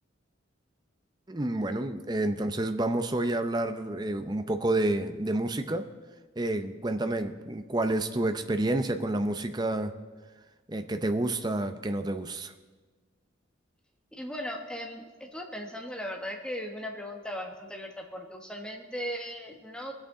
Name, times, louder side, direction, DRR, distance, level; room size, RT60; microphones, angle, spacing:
voice 1, 1.3-5.8 6.4-9.9 10.7-12.5, right 1 dB, 20° right, 7 dB, 0.6 m, -29 dB
voice 2, 14.1-19.9, equal, 5° left, 1 dB, 1.2 m, -38 dB
22.0 x 8.3 x 3.8 m, 1.3 s
head